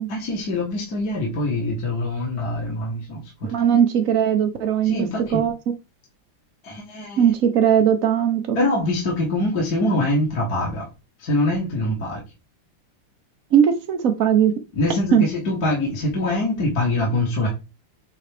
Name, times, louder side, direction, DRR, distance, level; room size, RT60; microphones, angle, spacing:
voice 1, 0.1-3.5 4.8-5.4 6.6-7.3 8.6-10.9 11.2-12.2 14.7-17.5, left 2 dB, 45° left, -3 dB, 2.2 m, -24 dB
voice 2, 3.4-4.9 5.3-5.5 7.2-8.6 13.5-14.5 15.1-15.2, right 9 dB, 50° right, 8 dB, 1.1 m, -18 dB
8.6 x 4.0 x 3.5 m, 0.27 s
omnidirectional pair, 2.4 m